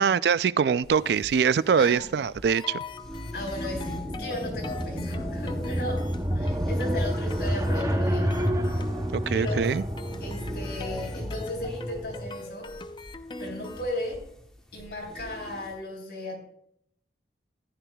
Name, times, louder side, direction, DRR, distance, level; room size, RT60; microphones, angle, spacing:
voice 1, 0.0-2.8 9.1-9.8, right 6 dB, 65° right, 17 dB, 0.3 m, -23 dB
sound 1, 0.8-12.3 12.7-15.8, equal, 5° left, 1.1 m, -42 dB
sound 2, 2.5-13.9, left 3 dB, 25° left, 0.5 m, -42 dB
voice 2, 3.3-6.1 6.3-8.5 9.2-9.7 10.2-12.7 13.4-14.2 14.7-16.4, left 1 dB, 60° left, -1 dB, 4.1 m, -35 dB
sound 3, 3.6-12.4, equal, 20° right, 0.7 m, -29 dB
14.5 x 10.0 x 2.3 m, 0.69 s
head